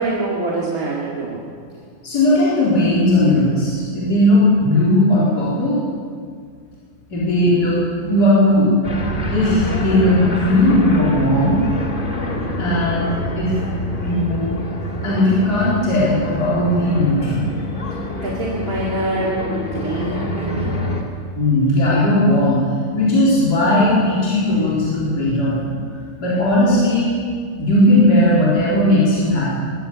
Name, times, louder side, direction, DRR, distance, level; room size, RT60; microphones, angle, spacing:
voice 1, 0.0-1.4 18.2-20.8, right 2 dB, 45° right, -5 dB, 2.8 m, -25 dB
voice 2, 2.0-5.8 7.1-8.7 9.3-11.6 12.6-13.5 14.0-14.6 15.0-17.4 21.3-22.6 22.9-25.7 26.2-27.2 27.6-29.6, left 1 dB, 55° left, -8 dB, 4.6 m, -17 dB
sound 1, 8.8-21.0, left 1 dB, 25° left, 2.3 m, -26 dB
21.5 x 17.5 x 7.0 m, 2.1 s
omnidirectional pair, 2.0 m